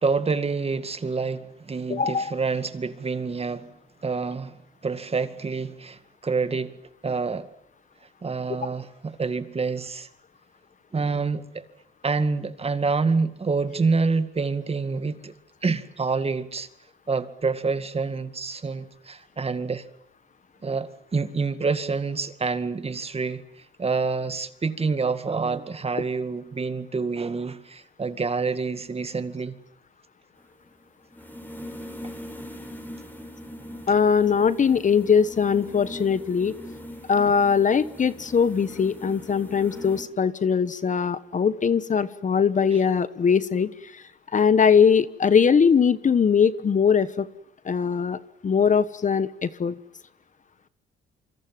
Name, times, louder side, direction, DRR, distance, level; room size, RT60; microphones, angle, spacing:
voice 1, 0.0-3.7 4.0-6.8 7.0-7.5 8.2-10.1 10.9-11.6 12.0-15.3 15.6-16.7 17.1-19.9 20.6-23.4 23.8-29.6, right 4 dB, 30° right, 2.1 m, -27 dB
voice 2, 1.9-2.3 33.9-36.5 37.1-44.0 44.3-47.3 47.6-48.2 48.4-49.7, left 6 dB, 40° left, 1.3 m, -21 dB
sound 1, 30.4-40.0, equal, 10° left, 6.7 m, -41 dB
27.5 x 25.0 x 7.7 m
cardioid pair, 90°, 20 cm